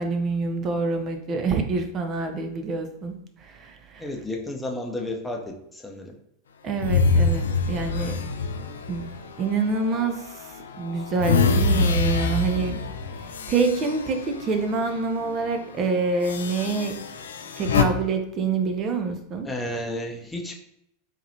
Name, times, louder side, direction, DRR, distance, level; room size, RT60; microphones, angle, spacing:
voice 1, 0.0-4.1 6.6-8.2 8.9-12.8 13.5-16.9 17.6-19.5, right 4 dB, 35° right, 6 dB, 0.7 m, -26 dB
voice 2, 4.0-5.4 5.7-6.1 19.4-20.6, left 1 dB, 10° left, 1 dB, 0.8 m, -32 dB
sound 1, 6.8-10.1 10.6-14.9 15.2-15.4 16.2-17.8, left 4 dB, 75° left, 0.4 m, -25 dB
4.1 x 2.9 x 2.8 m, 0.77 s
figure-of-eight pair, 90°, 0 cm